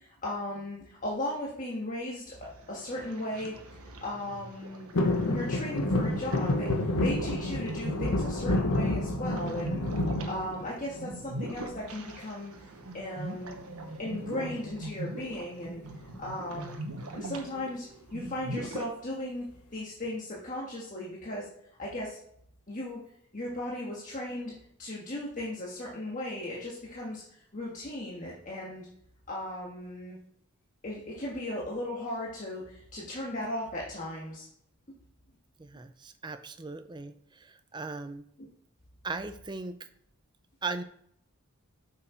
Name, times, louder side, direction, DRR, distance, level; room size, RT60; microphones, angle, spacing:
voice 1, 0.0-3.5 3.8-4.9 5.2-9.8 10.2-12.5 12.9-13.7 14.0-15.8 16.2-16.8 17.1-19.5 19.7-21.5 21.8-22.2 22.7-23.0 23.3-24.5 24.8-28.9 29.3-30.2 30.8-34.5 34.9-35.0 38.4-38.5, left 1 dB, 35° left, -5 dB, 1.5 m, -36 dB
sound 1, 2.4-18.9, right 1 dB, 80° right, 1.1 m, -41 dB
sound 2, 4.9-11.1 11.5-12.2 13.4-13.9 14.1-14.2 14.5-14.8 15.6-16.5 17.0-17.1, left 2 dB, 85° left, 1.1 m, -29 dB
voice 2, 35.6-38.2 39.0-39.8 40.6-40.8, right 3 dB, 20° right, 9 dB, 0.5 m, -38 dB
7.5 x 6.6 x 4.4 m, 0.70 s
head